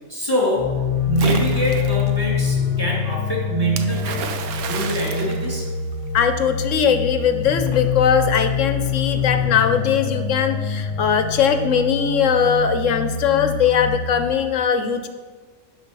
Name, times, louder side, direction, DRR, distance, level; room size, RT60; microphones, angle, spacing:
voice 1, 0.1-0.7 1.0-4.2 4.6-5.7, right 1 dB, 15° right, -3 dB, 2.3 m, -24 dB
sound 1, 0.6-14.2, left 6 dB, 35° left, 0.5 m, -25 dB
Splash splatter, 1.2-2.1 3.8-6.2, right 7 dB, 75° right, 1.2 m, -31 dB
voice 2, 6.1-15.1, left 7 dB, 65° left, 8 dB, 0.9 m, -20 dB
12.0 x 4.5 x 5.3 m, 1.4 s
omnidirectional pair, 1.5 m